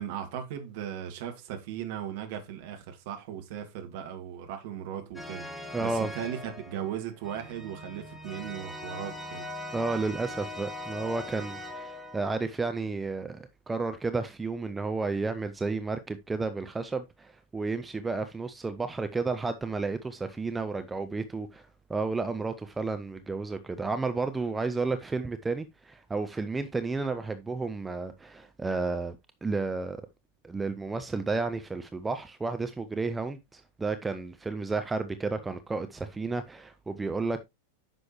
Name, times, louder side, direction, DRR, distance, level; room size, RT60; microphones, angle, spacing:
voice 1, 0.0-9.5, right 9 dB, 50° right, 1.8 m, -37 dB
sound 1, 5.2-12.4, left 1 dB, 5° left, 1.6 m, -41 dB
voice 2, 5.7-6.1 9.7-30.0 30.4-37.4, right 3 dB, 10° right, 0.6 m, -32 dB
9.5 x 6.2 x 3.0 m
figure-of-eight pair, 90°, 0 cm